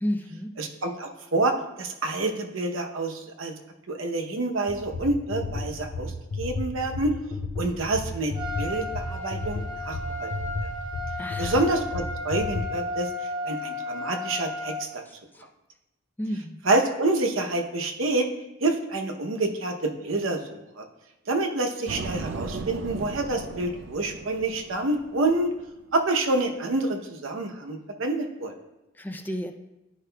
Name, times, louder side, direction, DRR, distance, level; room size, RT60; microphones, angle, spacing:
voice 1, 0.0-0.5 11.2-11.6 15.3-15.5 16.2-16.6 29.0-29.5, equal, 10° left, 6 dB, 0.4 m, -31 dB
voice 2, 0.6-3.5 3.9-6.1 6.4-7.1 7.6-10.3 11.4-13.1 13.4-15.0 16.6-18.3 18.6-20.8 21.3-25.5 25.9-28.5, right 2 dB, 85° right, 4 dB, 0.8 m, -27 dB
sound 1, 4.7-12.6, left 2 dB, 70° left, 0.6 m, -33 dB
Trumpet, 8.3-14.9, left 2 dB, 20° right, 0.8 m, -34 dB
sound 2, 21.9-25.6, right 3 dB, 60° right, 0.4 m, -36 dB
11.0 x 4.8 x 2.2 m, 0.98 s
head